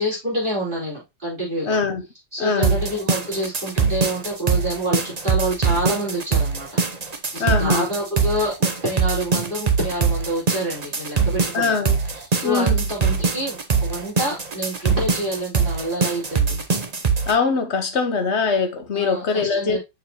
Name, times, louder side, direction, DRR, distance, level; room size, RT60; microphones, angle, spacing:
voice 1, 0.0-1.8 2.3-6.7 7.3-11.8 12.4-16.6 18.9-19.8, right 1 dB, 25° right, 4.5 m, -27 dB
voice 2, 1.6-2.0 2.4-2.8 7.4-7.9 11.5-12.0 12.4-12.8 17.3-19.8, left 4 dB, 50° left, 0.8 m, -22 dB
sound 1, 2.6-17.3, right 5 dB, 50° right, 0.4 m, -22 dB
7.0 x 5.7 x 3.0 m
omnidirectional pair, 2.1 m